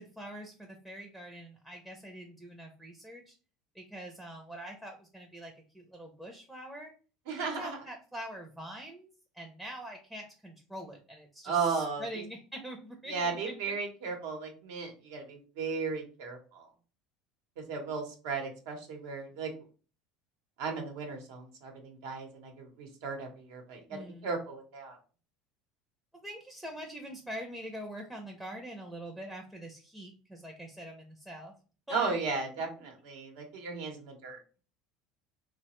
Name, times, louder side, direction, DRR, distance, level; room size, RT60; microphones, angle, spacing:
voice 1, 0.0-3.3 3.7-6.9 7.4-13.5 23.9-24.3 26.2-31.5 31.9-32.2, right 1 dB, 5° right, 1 dB, 0.5 m, -44 dB
voice 2, 7.3-7.8 11.4-12.2 13.1-16.7 17.6-19.5 20.6-25.0 31.9-34.4, right 5 dB, 80° right, 3 dB, 0.9 m, -35 dB
3.1 x 2.1 x 2.9 m, 0.37 s
supercardioid pair, 125°, 0 cm